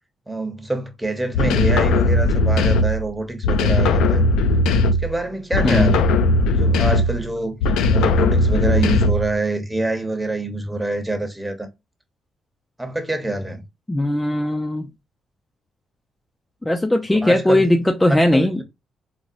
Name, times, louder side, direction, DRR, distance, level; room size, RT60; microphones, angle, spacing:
voice 1, 0.3-4.2 4.9-6.1 6.6-11.7 12.8-13.6 17.2-17.7 18.1-18.6, right 2 dB, 10° right, 0.8 m, -26 dB
sound 1, 1.3-3.1 3.4-5.2 5.5-7.2 7.6-9.3, left 2 dB, 90° left, 0.4 m, -18 dB
voice 2, 5.6-5.9 13.9-14.9 16.6-18.6, left 1 dB, 10° left, 0.3 m, -19 dB
4.0 x 2.1 x 2.5 m
cardioid pair, 90°, 0 cm